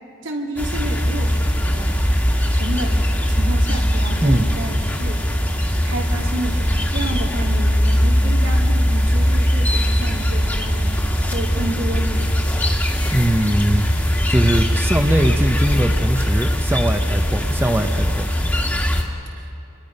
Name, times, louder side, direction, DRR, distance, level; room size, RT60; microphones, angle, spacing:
voice 1, 0.2-1.9 2.5-5.2 5.8-10.8 11.3-12.4, right 2 dB, 90° right, 0 dB, 2.8 m, -30 dB
sound 1, 0.6-19.0, equal, 10° left, 1.7 m, -20 dB
voice 2, 13.1-13.9 14.3-18.3, right 1 dB, 10° right, 5 dB, 0.8 m, -20 dB
28.5 x 21.5 x 5.4 m, 2.7 s
head